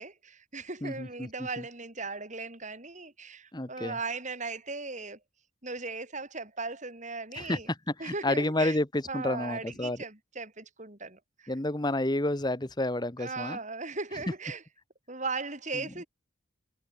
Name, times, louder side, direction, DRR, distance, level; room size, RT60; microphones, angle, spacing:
voice 1, 0.0-5.2 5.6-7.7 8.0-8.8 9.1-11.5 13.2-14.6 15.1-16.1, right 3 dB, 35° right, 4.4 m, -38 dB
voice 2, 0.8-1.3 1.6-1.7 3.5-4.0 7.3-7.6 8.0-10.0 11.5-13.6 15.7-15.9, left 1 dB, 20° left, 1.1 m, -30 dB
head